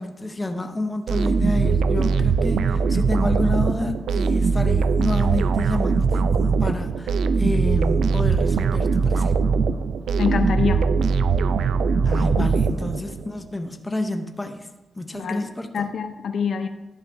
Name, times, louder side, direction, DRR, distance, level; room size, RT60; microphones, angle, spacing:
voice 1, 0.0-9.3 12.0-14.7 15.0-15.9, left 2 dB, 15° left, 6 dB, 0.6 m, -29 dB
sound 1, 1.1-13.3, right 5 dB, 85° right, 0.3 m, -21 dB
voice 2, 10.2-10.8 12.3-12.5 15.1-15.5 15.7-16.7, left 6 dB, 65° left, 8 dB, 0.5 m, -25 dB
11.5 x 7.0 x 2.6 m, 1.1 s
wide cardioid pair, 120°, 0 cm